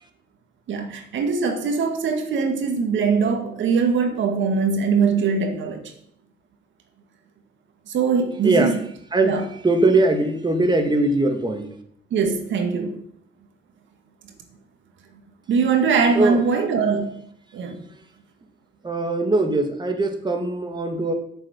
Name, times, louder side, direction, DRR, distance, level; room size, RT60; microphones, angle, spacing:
voice 1, 0.7-5.9 7.9-8.8 9.2-9.5 12.1-13.0 15.5-17.2 17.5-17.8, right 5 dB, 70° right, 5 dB, 1.8 m, -22 dB
voice 2, 9.1-11.7 16.2-16.4 18.8-21.1, right 2 dB, 20° right, 5 dB, 2.0 m, -21 dB
8.6 x 7.1 x 8.7 m, 0.66 s
cardioid pair, 90°, 20 cm